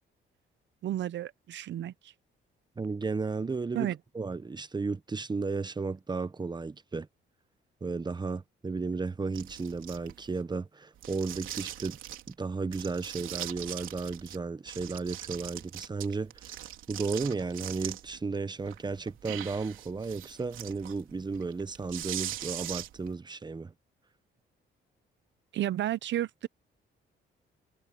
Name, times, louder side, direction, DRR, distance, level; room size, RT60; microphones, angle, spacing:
voice 1, 0.8-1.9 3.7-4.0 25.5-26.5, right 12 dB, 65° right, 0.8 m, -32 dB
voice 2, 2.8-7.1 7.8-12.0 12.3-23.7, right 4 dB, 20° right, 0.9 m, -34 dB
sound 1, 9.3-10.4 11.0-12.3 12.7-14.4 14.7-18.2 18.6-23.1, right 12 dB, 85° right, 3.7 m, -41 dB
cardioid pair, 90°, 20 cm